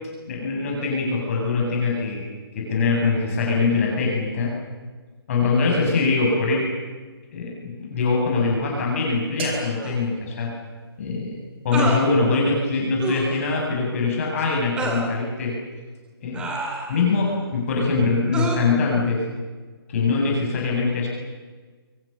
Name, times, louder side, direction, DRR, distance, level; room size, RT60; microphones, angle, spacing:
voice 1, 0.3-4.6 5.3-6.7 7.3-10.5 11.0-15.6 16.2-16.5 16.9-19.3 19.9-21.1, left 4 dB, 35° left, -2 dB, 7.5 m, -23 dB
sound 1, 9.4-11.4, right 4 dB, 25° right, 4.9 m, -39 dB
sound 2, 9.8-10.0 11.7-12.1 13.0-13.3 14.8-15.1 16.3-17.1 18.3-18.6, right 2 dB, 5° right, 2.8 m, -28 dB
29.5 x 24.5 x 6.8 m, 1.4 s
hypercardioid pair, 160°, 13 cm